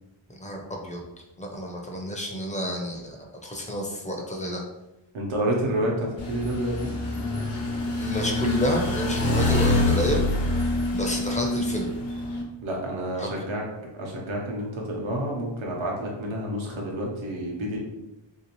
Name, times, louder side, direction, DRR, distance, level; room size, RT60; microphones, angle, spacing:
voice 1, 0.4-1.0 1.4-4.6 8.0-10.2 10.9-11.9 13.2-13.3, equal, 15° left, 1 dB, 0.4 m, -29 dB
voice 2, 5.1-6.9 12.6-13.7 13.9-17.8, right 1 dB, 75° right, -2 dB, 0.9 m, -29 dB
sound 1, 6.2-12.4, left 2 dB, 75° left, 0.9 m, -26 dB
3.2 x 2.7 x 2.9 m, 0.95 s
wide cardioid pair, 140°, 49 cm